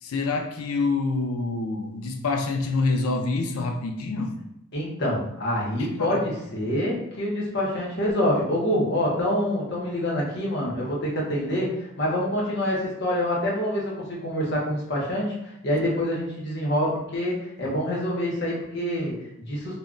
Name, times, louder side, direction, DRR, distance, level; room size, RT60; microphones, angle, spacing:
voice 1, 0.0-4.3 6.0-6.2, left 3 dB, 90° left, 4 dB, 0.4 m, -26 dB
voice 2, 4.7-19.8, left 1 dB, 50° left, -4 dB, 0.8 m, -26 dB
2.1 x 2.1 x 3.7 m, 0.82 s
head